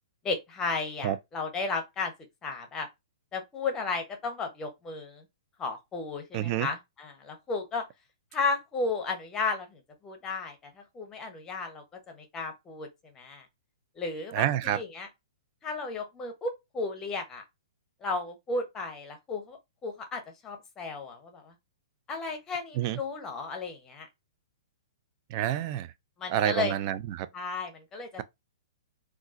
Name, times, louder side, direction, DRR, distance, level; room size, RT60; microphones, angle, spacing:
voice 1, 0.2-2.1 2.4-2.9 3.3-5.2 5.6-7.8 8.3-12.9 13.2-13.5 14.0-15.1 15.6-17.4 18.0-21.5 22.1-24.1 26.2-26.7 27.3-28.2, left 4 dB, 20° left, 0.8 m, -34 dB
voice 2, 6.3-6.7 14.3-14.8 22.8-23.0 25.3-25.9 26.3-27.3, right 12 dB, 40° right, 0.3 m, -28 dB
3.7 x 2.4 x 2.5 m
hypercardioid pair, 130°, 3 cm